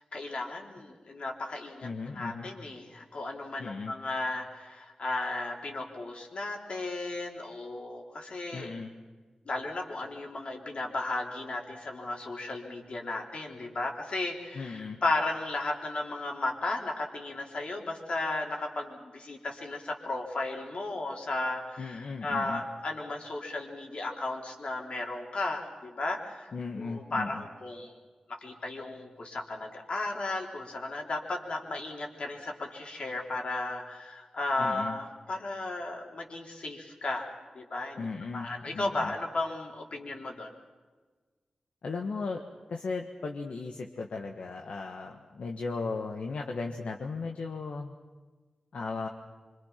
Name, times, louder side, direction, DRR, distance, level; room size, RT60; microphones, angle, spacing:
voice 1, 0.1-8.7 9.5-26.5 26.8-27.9 28.3-38.1 38.3-40.5, left 2 dB, 65° left, 0 dB, 4.1 m, -35 dB
voice 2, 1.8-2.5 3.6-3.9 8.5-8.9 14.5-15.0 21.8-22.6 26.5-27.4 34.6-35.0 38.0-38.5 38.7-39.1 41.8-42.4 42.7-47.9 48.7-49.1, left 4 dB, 80° left, 2 dB, 1.6 m, -36 dB
25.5 x 25.5 x 6.0 m, 1.4 s
wide cardioid pair, 80°, 2 cm